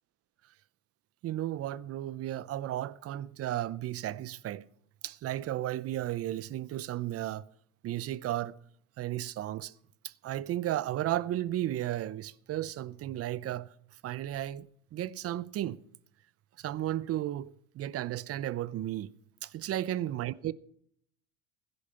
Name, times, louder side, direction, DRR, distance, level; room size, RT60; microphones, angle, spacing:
voice 1, 1.2-4.7 5.0-7.4 7.8-8.6 9.0-9.7 10.0-13.7 14.0-15.8 16.6-19.1 19.4-20.5, right 13 dB, 40° right, 0.7 m, -34 dB
16.5 x 10.5 x 4.3 m
hypercardioid pair, 85°, 37 cm